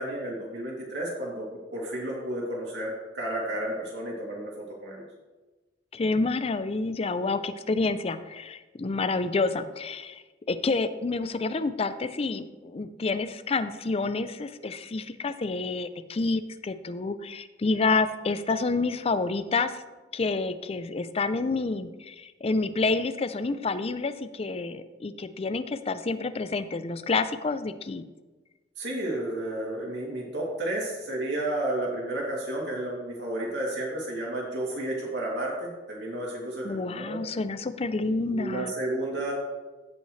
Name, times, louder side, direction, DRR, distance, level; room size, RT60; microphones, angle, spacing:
voice 1, 0.0-1.5 1.7-5.0 28.8-37.2 38.3-39.3, right 1 dB, 70° right, -3 dB, 2.7 m, -32 dB
voice 2, 5.9-19.8 20.1-28.0 36.6-38.7, left 3 dB, 35° left, 12 dB, 0.4 m, -28 dB
15.5 x 5.5 x 3.2 m, 1.2 s
head